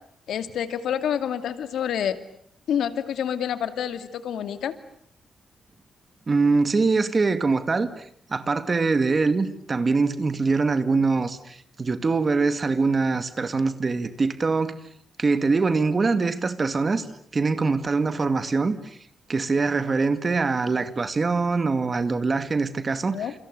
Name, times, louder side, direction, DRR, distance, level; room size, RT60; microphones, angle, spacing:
voice 1, 0.3-2.2 2.7-4.7 23.1-23.3, left 9 dB, 85° left, 10 dB, 2.4 m, -28 dB
voice 2, 6.3-14.8 15.2-17.1 17.3-19.0 19.3-23.2, right 4 dB, 25° right, 11 dB, 2.2 m, -23 dB
30.0 x 29.0 x 6.8 m, 0.65 s
wide cardioid pair, 165°, 0 cm